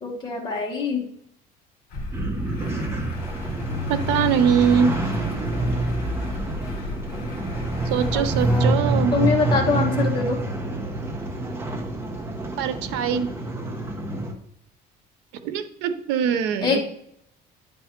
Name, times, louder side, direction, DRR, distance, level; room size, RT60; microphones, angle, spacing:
voice 1, 0.0-1.1 8.1-8.8 9.1-10.4 16.6-16.8, left 4 dB, 25° left, -1 dB, 1.4 m, -24 dB
Truck, 1.9-8.6, left 2 dB, 55° left, 2.1 m, -36 dB
sound 1, 2.1-14.3, right 1 dB, 15° right, 0.9 m, -26 dB
voice 2, 3.9-4.9 7.9-9.1 12.6-13.3 15.4-16.8, right 7 dB, 90° right, 10 dB, 0.8 m, -22 dB
9.4 x 3.5 x 4.4 m, 0.72 s
cardioid pair, 150°, 17 cm